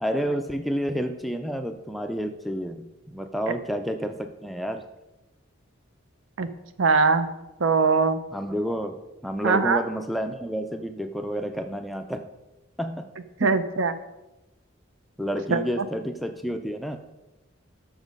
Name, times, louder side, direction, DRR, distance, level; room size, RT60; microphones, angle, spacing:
voice 1, 0.0-4.8 8.3-12.3 12.8-13.1 13.4-13.5 15.2-17.0, equal, ahead, 6 dB, 0.3 m, -30 dB
voice 2, 6.8-7.3 7.6-8.2 9.4-9.8 13.4-13.9 15.5-15.6, right 4 dB, 75° right, 11 dB, 0.6 m, -21 dB
7.2 x 6.3 x 5.2 m, 1.0 s
head